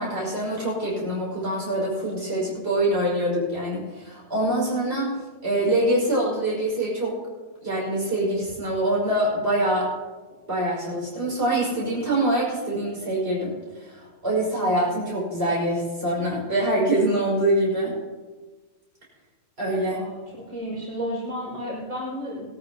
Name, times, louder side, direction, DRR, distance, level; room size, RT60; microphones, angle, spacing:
voice 1, 0.0-7.2 7.6-9.9 10.5-17.9 19.6-20.1, right 1 dB, 45° right, -6 dB, 5.8 m, -25 dB
voice 2, 19.9-22.5, equal, 65° right, -6 dB, 5.7 m, -32 dB
20.5 x 13.5 x 2.9 m, 1.3 s
omnidirectional pair, 1.4 m